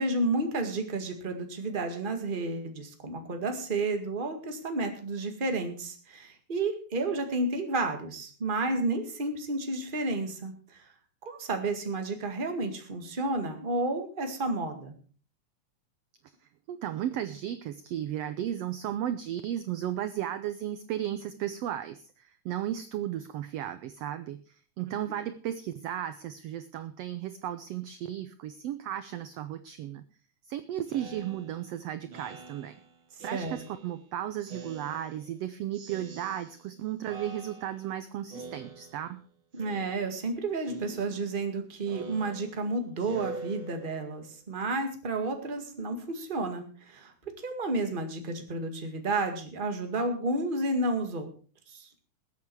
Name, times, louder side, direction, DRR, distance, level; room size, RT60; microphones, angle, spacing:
voice 1, 0.0-10.9 11.2-14.9 33.3-33.6 39.5-47.1 47.4-51.3 51.7-51.9, right 2 dB, 20° right, 5 dB, 1.5 m, -31 dB
voice 2, 16.7-30.0 30.5-32.7 33.2-39.2, right 11 dB, 75° right, 11 dB, 1.5 m, -35 dB
Speech synthesizer, 30.9-34.0 34.4-35.4 35.7-36.8 37.0-38.0 38.3-39.2 39.5-40.3 40.6-44.2, right 3 dB, 45° right, 2.5 m, -46 dB
20.5 x 8.3 x 4.7 m, 0.40 s
omnidirectional pair, 3.6 m